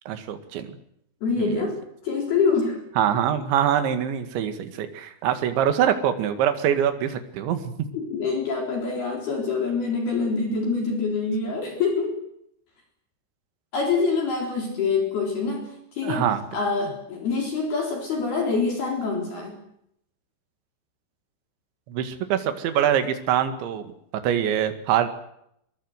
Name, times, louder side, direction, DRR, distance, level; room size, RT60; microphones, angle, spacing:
voice 1, 0.1-0.7 1.4-1.6 3.0-7.7 16.0-16.4 21.9-23.9 24.2-25.1, right 9 dB, 70° right, 9 dB, 4.2 m, -24 dB
voice 2, 1.2-2.8 7.9-12.2 13.7-19.6, left 4 dB, 55° left, 2 dB, 5.8 m, -25 dB
24.5 x 22.5 x 8.1 m, 0.74 s
omnidirectional pair, 5.7 m